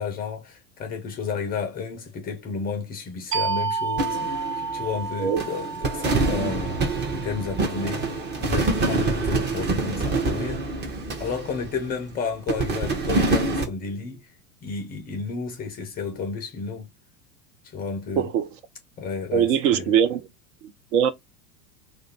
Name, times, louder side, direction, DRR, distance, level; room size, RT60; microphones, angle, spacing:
voice 1, 0.0-10.7 11.2-14.3 14.6-16.9 17.6-18.3 19.0-19.9, left 5 dB, 20° left, 0.5 m, -32 dB
sound 1, 3.3-8.6, right 5 dB, 75° right, 1.1 m, -31 dB
sound 2, 4.0-5.1 5.4-12.0 12.5-13.6, right 3 dB, 20° right, 0.8 m, -26 dB
voice 2, 18.2-18.5 19.3-20.3 20.6-21.1, right 8 dB, 50° right, 0.6 m, -22 dB
2.5 x 2.2 x 4.0 m
figure-of-eight pair, 90°, 47 cm